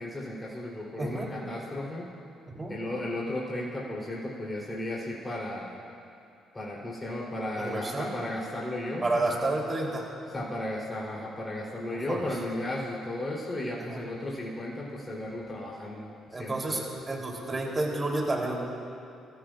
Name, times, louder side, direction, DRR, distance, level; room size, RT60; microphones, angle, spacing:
voice 1, 0.0-2.1 2.7-5.8 6.5-9.2 10.3-16.1 16.4-16.7, left 1 dB, 25° left, -5 dB, 3.7 m, -35 dB
voice 2, 1.0-1.3 2.5-2.8 7.6-8.1 9.0-10.1 12.1-12.2 13.8-14.1 16.3-18.5, right 2 dB, 30° right, -1 dB, 3.6 m, -30 dB
23.5 x 14.0 x 2.6 m, 2.5 s
hypercardioid pair, 45°, 0 cm